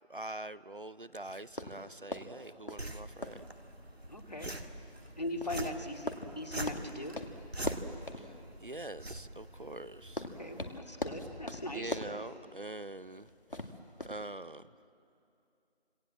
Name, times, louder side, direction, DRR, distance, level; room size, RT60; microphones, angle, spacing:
voice 1, 0.1-3.4 8.2-8.3 8.6-10.3 11.7-13.3 14.1-14.7, right 2 dB, 55° right, 17 dB, 0.6 m, -44 dB
sound 1, 1.2-14.3, left 1 dB, 55° left, 2.1 m, -43 dB
sound 2, 2.8-10.8, right 1 dB, 75° right, 2.2 m, -44 dB
voice 2, 4.1-4.5 5.2-7.2 10.4-12.0, left 1 dB, 40° left, 4 dB, 2.3 m, -40 dB
27.0 x 27.0 x 7.5 m, 2.7 s
figure-of-eight pair, 175°, 32 cm